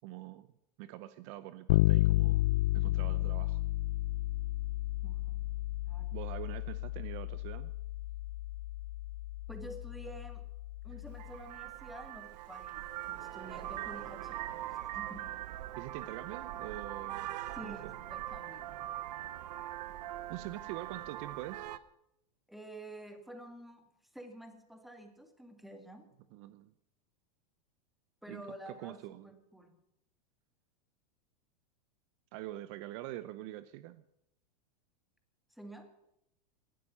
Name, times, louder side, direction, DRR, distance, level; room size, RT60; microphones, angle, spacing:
voice 1, 0.0-0.5 0.8-2.4 2.7-3.6 6.1-7.7 15.8-18.0 20.3-21.8 26.3-26.7 28.3-29.3 32.3-34.0, right 15 dB, 45° right, 14 dB, 0.7 m, -45 dB
Bass guitar, 1.7-11.4, left 17 dB, 70° left, 0.5 m, -32 dB
voice 2, 5.0-6.2 9.5-10.4 10.8-15.3 17.5-18.8 22.5-23.9 24.1-26.1 28.2-29.8 35.5-35.9, right 1 dB, ahead, 6 dB, 2.0 m, -50 dB
Vehicle horn car horn honking, 11.1-21.8, right 13 dB, 70° right, 1.0 m, -42 dB
18.5 x 12.5 x 5.6 m, 0.82 s
supercardioid pair, 150°, 21 cm